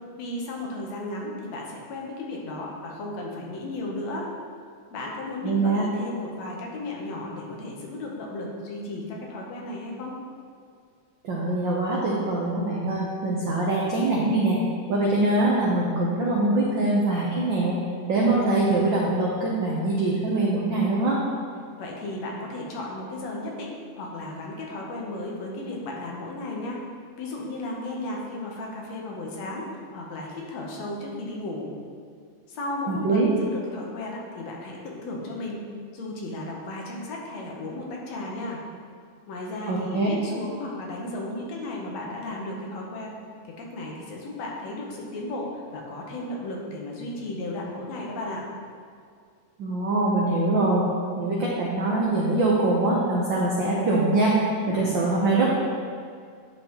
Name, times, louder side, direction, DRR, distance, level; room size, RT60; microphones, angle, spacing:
voice 1, 0.1-4.3 4.9-10.2 21.8-23.7 24.0-26.8 27.2-31.7 32.5-35.6 35.9-38.6 39.3-43.2 43.4-48.4, left 2 dB, 70° left, -1 dB, 2.1 m, -34 dB
voice 2, 5.4-5.9 11.2-14.6 14.9-17.8 18.1-21.2 32.9-33.3 39.7-40.1 49.6-50.8 51.2-54.3 54.7-55.5, right 2 dB, 85° right, -4 dB, 1.0 m, -23 dB
11.0 x 5.3 x 3.0 m, 2.2 s
omnidirectional pair, 3.3 m